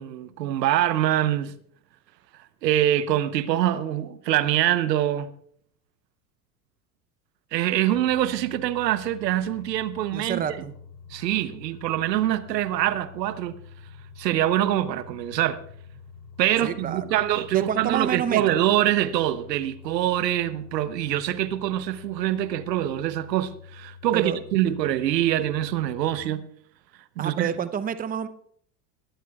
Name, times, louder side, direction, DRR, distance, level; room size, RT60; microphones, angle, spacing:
voice 1, 0.0-1.5 2.6-5.3 7.5-10.4 11.1-13.6 14.2-15.6 16.4-26.5 27.2-27.5, right 12 dB, 80° right, 1.0 m, -24 dB
sound 1, 7.9-26.2, left 6 dB, 75° left, 3.9 m, -47 dB
voice 2, 10.1-10.7 16.6-17.0 17.5-18.6 24.1-24.4 27.2-28.3, right 8 dB, 15° right, 0.7 m, -28 dB
20.5 x 13.0 x 2.4 m
hypercardioid pair, 80°, 50 cm